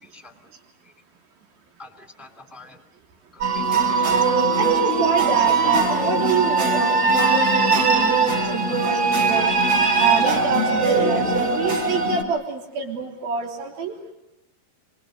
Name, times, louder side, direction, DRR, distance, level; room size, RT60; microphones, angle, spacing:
voice 1, 1.8-2.8 3.3-4.2 4.5-4.6 7.1-7.2 8.7-8.8 10.4-10.5 11.2-11.3, left 2 dB, ahead, 5 dB, 1.9 m, -45 dB
sound 1, 3.4-12.2, right 4 dB, 40° right, 5.6 m, -20 dB
voice 2, 4.6-9.5 10.0-14.0, right 6 dB, 90° right, 1 dB, 5.2 m, -26 dB
30.0 x 25.5 x 6.5 m, 0.90 s
omnidirectional pair, 4.1 m